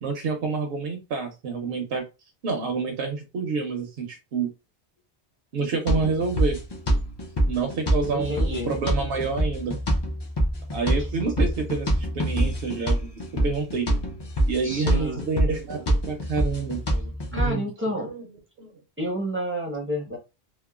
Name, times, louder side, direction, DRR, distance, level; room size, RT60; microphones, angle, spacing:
voice 1, 0.0-2.0 2.4-4.5 5.5-6.6 7.5-9.8 10.7-13.1 13.4-13.9 14.5-17.7 18.1-18.2 18.6-18.7, right 4 dB, 70° right, 2 dB, 0.8 m, -28 dB
sound 1, 5.9-17.5, right 1 dB, 45° left, 0.3 m, -26 dB
voice 2, 8.1-8.7 14.6-15.3 17.3-18.1 19.0-20.2, equal, 15° right, -1 dB, 0.5 m, -29 dB
2.9 x 2.1 x 2.3 m, 0.27 s
omnidirectional pair, 1.1 m